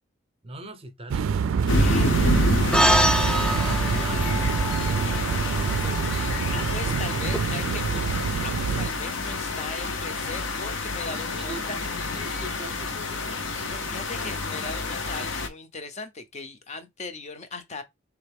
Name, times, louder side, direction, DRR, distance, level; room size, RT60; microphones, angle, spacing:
voice 1, 0.4-6.1 7.1-8.2 11.3-13.4, right 1 dB, 30° right, 0.7 m, -42 dB
sound 1, 1.1-8.9, right 6 dB, 75° right, 0.3 m, -26 dB
sound 2, 1.7-15.5, left 2 dB, 65° left, 0.8 m, -28 dB
voice 2, 1.7-2.2 6.5-7.8 8.4-11.8 13.6-17.8, left 3 dB, 35° left, 0.7 m, -38 dB
sound 3, 2.7-7.4, equal, 5° left, 0.3 m, -26 dB
4.0 x 3.4 x 3.4 m
head